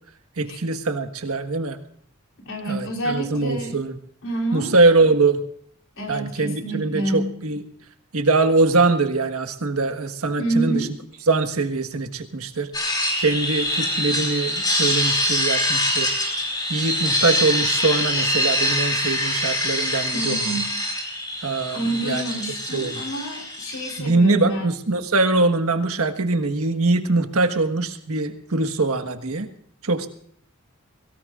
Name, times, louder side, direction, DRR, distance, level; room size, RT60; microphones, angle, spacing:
voice 1, 0.4-1.8 2.7-4.0 4.5-5.4 6.1-7.6 8.1-10.9 11.3-12.9 13.2-16.1 16.7-20.6 21.4-22.2 22.7-23.0 24.0-29.5 29.8-30.1, right 3 dB, 80° right, 7 dB, 1.5 m, -22 dB
voice 2, 2.5-3.8 4.2-4.7 6.0-7.3 10.4-10.9 20.1-20.7 21.7-24.7, right 1 dB, 65° left, 1 dB, 3.8 m, -27 dB
sound 1, 12.7-24.0, left 1 dB, 20° left, 4.7 m, -24 dB
23.0 x 17.5 x 2.5 m, 0.62 s
head